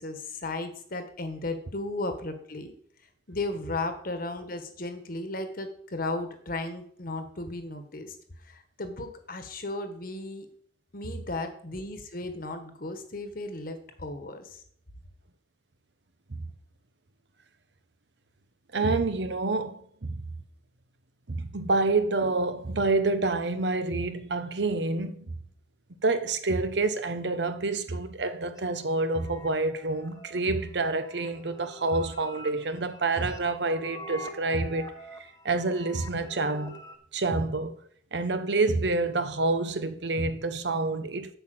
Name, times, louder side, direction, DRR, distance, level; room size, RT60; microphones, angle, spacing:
voice 1, 0.0-2.7 3.3-8.2 8.4-10.5 10.9-14.6, left 2 dB, 55° left, 1.5 m, -35 dB
voice 2, 18.7-20.2 21.3-25.3 26.0-34.9 35.2-36.8 37.1-37.8 38.1-41.4, right 3 dB, 70° right, 0.9 m, -28 dB
sound 1, 28.6-37.0, equal, 20° left, 1.0 m, -46 dB
8.2 x 6.0 x 7.8 m
head